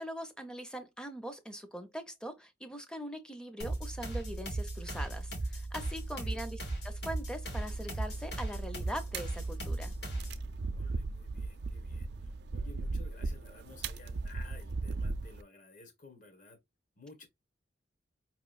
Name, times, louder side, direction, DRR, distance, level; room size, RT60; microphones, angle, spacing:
voice 1, 0.0-6.6 6.8-9.9, equal, 5° left, 0.5 m, -42 dB
sound 1, 3.6-10.5, right 2 dB, 70° left, 1.4 m, -37 dB
voice 2, 5.9-6.4 10.6-16.6 17.0-17.3, left 3 dB, 45° left, 1.1 m, -55 dB
sound 2, 7.5-15.4, right 3 dB, 65° right, 0.4 m, -38 dB
5.1 x 3.0 x 2.4 m
head